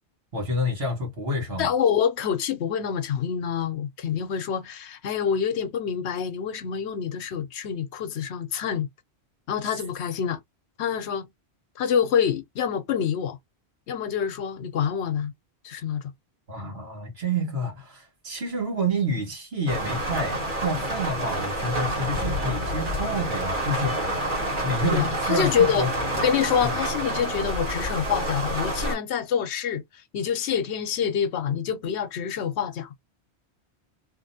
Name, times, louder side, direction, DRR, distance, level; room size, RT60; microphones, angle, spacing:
voice 1, 0.3-1.7 16.5-24.1 24.6-25.9 26.6-26.7, equal, 70° right, 1.7 m, -28 dB
voice 2, 1.6-8.9 9.5-10.4 10.8-11.3 11.8-13.4 13.9-15.3 15.6-16.0 24.9-25.9 26.1-29.8 30.1-32.9, left 8 dB, 85° left, 0.9 m, -26 dB
sound 1, 19.7-29.0, right 1 dB, 50° right, 1.7 m, -28 dB
2.9 x 2.5 x 2.7 m
omnidirectional pair, 1.1 m